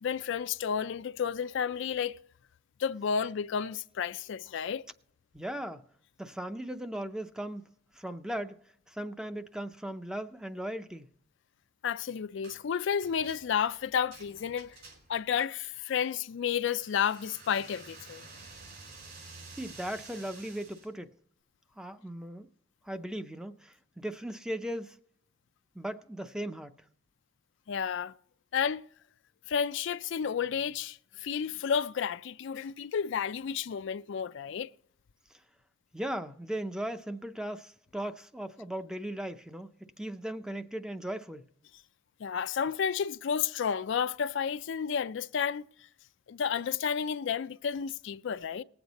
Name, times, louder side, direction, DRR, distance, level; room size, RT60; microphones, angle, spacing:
voice 1, 0.0-2.2 2.8-4.8 11.8-14.8 15.1-18.3 27.7-28.1 28.5-28.8 29.5-34.7 42.2-45.6 46.3-48.6, left 7 dB, 65° left, 0.4 m, -31 dB
voice 2, 5.3-5.9 6.2-8.6 8.9-11.1 19.6-21.1 21.8-22.5 22.8-25.0 25.7-26.8 35.9-39.7 40.0-41.5, right 1 dB, 5° right, 0.5 m, -37 dB
sound 1, 12.4-12.6 13.0-15.3 16.7-20.9, right 3 dB, 55° right, 4.4 m, -50 dB
19.0 x 8.0 x 4.0 m
head